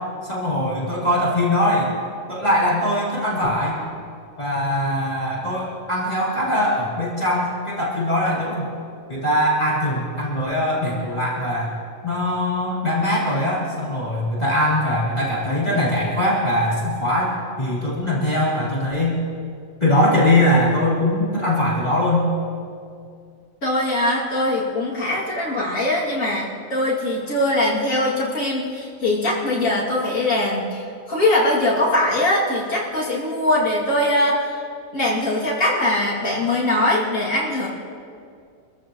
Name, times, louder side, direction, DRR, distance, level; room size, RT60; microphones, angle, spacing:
voice 1, 0.2-1.9 2.3-3.8 4.4-8.7 9.1-11.7 12.0-19.2 19.8-22.3, left 1 dB, 30° left, -7 dB, 3.1 m, -21 dB
voice 2, 23.6-30.8 31.1-34.4 34.9-37.7, left 1 dB, 75° left, -6 dB, 3.0 m, -21 dB
26.0 x 15.0 x 3.1 m, 2.3 s
omnidirectional pair, 1.4 m